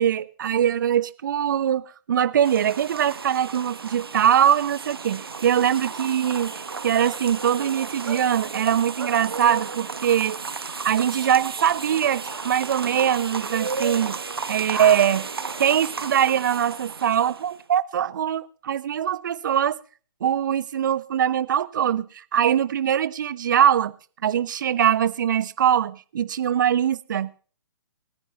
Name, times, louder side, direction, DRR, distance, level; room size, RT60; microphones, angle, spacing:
voice 1, 0.0-10.4 10.8-14.2 14.5-15.3 15.6-19.8 20.2-23.9 24.2-27.4, right 9 dB, 55° right, 1.0 m, -22 dB
sound 1, 2.4-17.6, right 5 dB, 75° right, 1.2 m, -33 dB
19.5 x 10.5 x 3.0 m
figure-of-eight pair, 125°, 12 cm